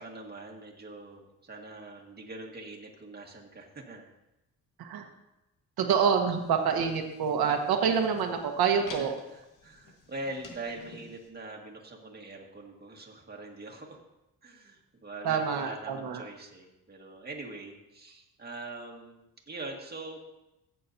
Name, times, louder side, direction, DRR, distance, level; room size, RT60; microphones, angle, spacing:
voice 1, 0.0-4.1 8.9-14.0 14.4-20.2, right 2 dB, 25° right, 0 dB, 1.8 m, -43 dB
voice 2, 5.8-9.1 15.2-16.2, right 6 dB, 85° right, 4 dB, 1.3 m, -27 dB
sound 1, 6.3-11.3, left 3 dB, 55° left, 1.7 m, -50 dB
14.5 x 8.5 x 2.7 m, 0.95 s
cardioid pair, 105°, 36 cm